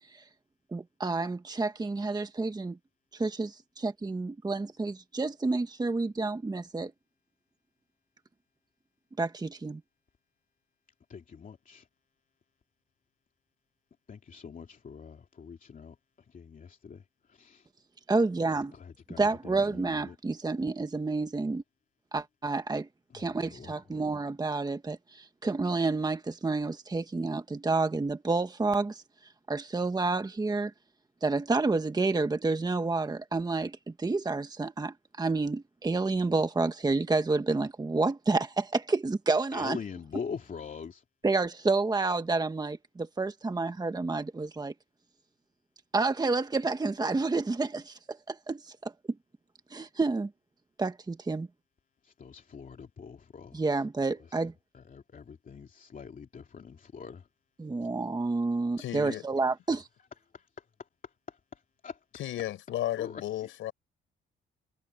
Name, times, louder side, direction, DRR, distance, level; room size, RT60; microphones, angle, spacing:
voice 1, 0.7-2.8 3.1-6.9 9.2-9.8 18.1-18.7 19.2-21.6 22.1-22.9 23.1-29.0 29.5-30.7 31.2-39.8 41.2-44.7 45.9-48.9 49.7-50.3 50.8-51.5 53.5-54.5 57.6-59.8, right 3 dB, 20° right, 1.4 m, -29 dB
voice 2, 11.1-11.9 14.1-15.9 16.3-17.0 17.3-17.7 18.7-20.2 23.1-23.7 39.5-41.0 52.0-53.9 54.1-54.4 54.7-57.3 60.1-60.2 61.0-62.5 63.0-63.5, left 6 dB, 45° left, 2.8 m, -44 dB
voice 3, 58.8-59.2 62.1-63.7, left 13 dB, 85° left, 4.3 m, -34 dB
cardioid pair, 90°, 20 cm